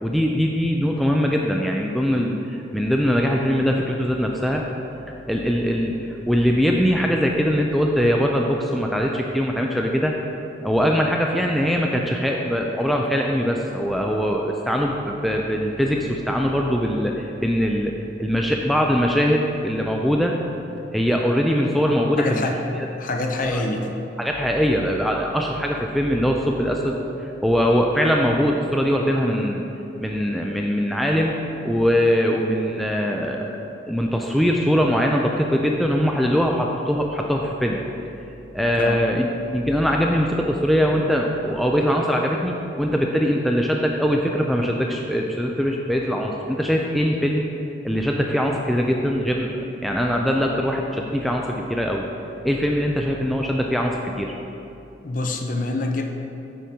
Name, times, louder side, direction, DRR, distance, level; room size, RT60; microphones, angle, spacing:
voice 1, 0.0-4.6 5.3-10.1 10.6-20.4 20.9-22.4 22.8-22.9 23.4-23.6 24.2-27.0 27.2-29.6 30.0-31.4 31.6-33.6 33.9-37.8 38.5-47.4 47.8-52.0 52.4-54.3, equal, ahead, 0 dB, 0.3 m, -22 dB
voice 2, 22.2-22.6 23.0-23.9 38.7-39.0 55.0-56.1, left 2 dB, 45° left, 4 dB, 0.6 m, -26 dB
9.1 x 4.8 x 4.3 m, 2.9 s
head